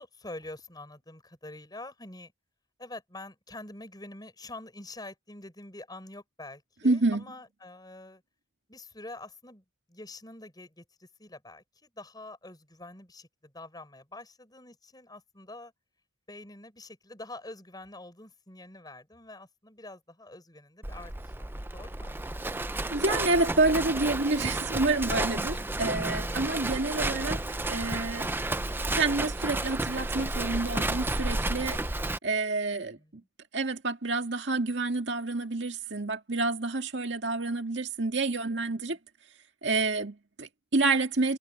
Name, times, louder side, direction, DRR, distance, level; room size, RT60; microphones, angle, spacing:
voice 1, 0.0-2.3 2.8-8.2 8.7-15.7 16.3-21.1 21.4-22.4 25.6-25.7 32.7-33.1 38.4-39.0, left 2 dB, 20° left, 5.9 m, -46 dB
voice 2, 6.8-7.3 22.9-28.3 28.9-31.8 32.2-33.0 33.5-39.0 39.6-41.4, right 3 dB, 70° right, 2.1 m, -28 dB
Livestock farm animals working animals, 20.8-32.2, right 2 dB, 10° right, 0.6 m, -32 dB
head